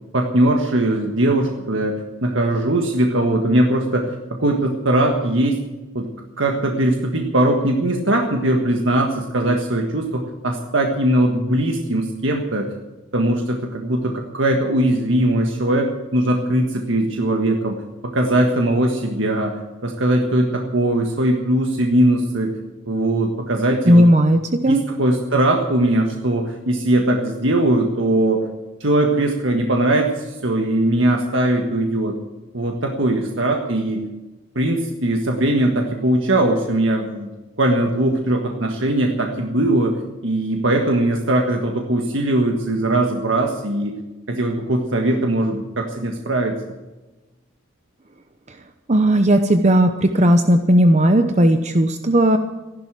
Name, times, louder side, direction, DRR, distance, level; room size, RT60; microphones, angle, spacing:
voice 1, 0.1-5.6 5.9-6.1 6.4-12.7 13.1-17.8 18.0-22.5 22.9-24.1 24.6-28.4 28.8-32.1 32.5-34.0 34.5-37.3 37.6-43.9 44.3-46.6, right 1 dB, 70° right, 2 dB, 1.6 m, -20 dB
voice 2, 23.9-24.8 48.9-52.4, equal, 35° right, 8 dB, 0.8 m, -15 dB
15.0 x 11.5 x 7.6 m, 1.1 s
head